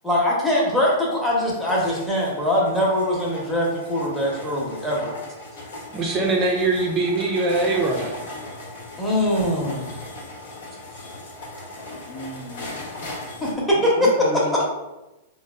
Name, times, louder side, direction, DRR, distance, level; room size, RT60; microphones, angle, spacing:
voice 1, 0.0-5.1 9.0-9.9 13.4-14.1, left 1 dB, 5° left, -6 dB, 0.8 m, -22 dB
sound 1, 0.7-13.5, left 2 dB, 80° left, 1.0 m, -38 dB
voice 2, 5.9-8.2, right 2 dB, 25° right, -1 dB, 0.4 m, -22 dB
voice 3, 12.1-12.8 13.7-14.7, left 2 dB, 40° left, 0 dB, 0.6 m, -33 dB
4.0 x 2.0 x 2.3 m, 1.0 s
hypercardioid pair, 150°, 0 cm